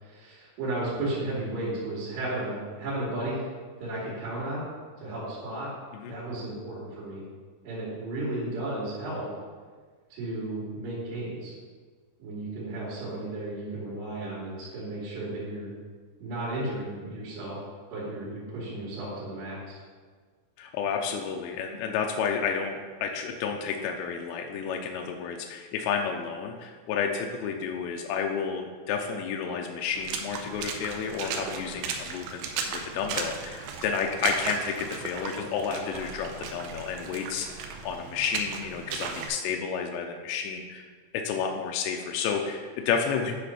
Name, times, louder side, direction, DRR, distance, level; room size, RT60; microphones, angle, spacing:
voice 1, 0.0-3.4 3.8-4.6 5.0-5.7 6.0-7.2 7.6-9.3 10.1-11.5 12.2-15.7 16.2-17.6 17.9-19.8, right 2 dB, 65° right, -10 dB, 4.1 m, -34 dB
voice 2, 20.6-40.8 41.1-43.3, left 6 dB, 90° left, 2 dB, 2.5 m, -31 dB
Water / Splash splatter, 29.9-39.3, right 5 dB, 80° right, 2.7 m, -36 dB
10.0 x 4.2 x 5.6 m, 1.5 s
omnidirectional pair, 5.7 m